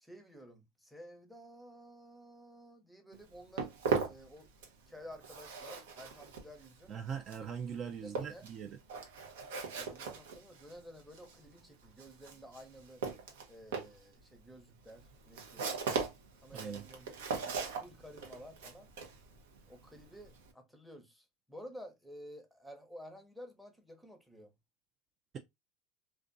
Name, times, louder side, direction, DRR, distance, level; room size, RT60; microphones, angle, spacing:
voice 1, 0.0-3.7 4.0-4.5 4.9-7.0 8.0-8.5 9.7-13.0 13.5-17.2 17.4-18.9 19.7-24.5, equal, ahead, 0.7 m, -52 dB
Walk footsteps, 3.1-4.9 5.1-20.5, right 5 dB, 80° right, 0.6 m, -40 dB
voice 2, 6.9-8.8 16.5-16.8, right 7 dB, 40° right, 0.3 m, -41 dB
2.4 x 2.2 x 2.5 m
hypercardioid pair, 95°, 0 cm